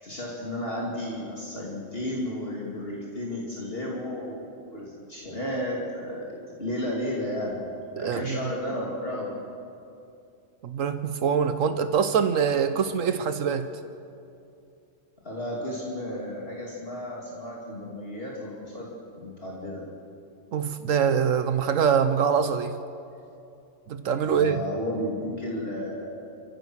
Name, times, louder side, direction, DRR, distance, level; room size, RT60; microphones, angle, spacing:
voice 1, 0.0-4.5 4.7-7.7 8.0-9.3 15.2-18.9 19.2-19.8 24.2-26.2, left 1 dB, 45° left, -4 dB, 2.9 m, -33 dB
voice 2, 8.0-8.4 10.6-13.7 20.5-22.8 23.9-24.6, right 7 dB, 80° right, 10 dB, 1.2 m, -24 dB
29.0 x 15.5 x 6.2 m, 2.6 s
omnidirectional pair, 1.3 m